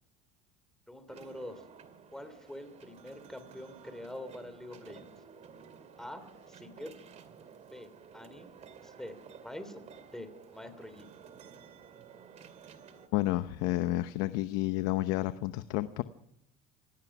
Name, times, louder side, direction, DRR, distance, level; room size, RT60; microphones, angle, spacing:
voice 1, 0.9-1.7 2.1-5.1 6.0-7.0 7.7-8.5 8.8-9.8 10.1-11.1, left 1 dB, ahead, 10 dB, 2.9 m, -45 dB
sound 1, 1.1-13.1, right 6 dB, 40° right, 2.4 m, -53 dB
voice 2, 13.1-16.0, left 17 dB, 75° left, 11 dB, 0.9 m, -30 dB
26.5 x 17.0 x 6.0 m, 0.78 s
cardioid pair, 125°, 19 cm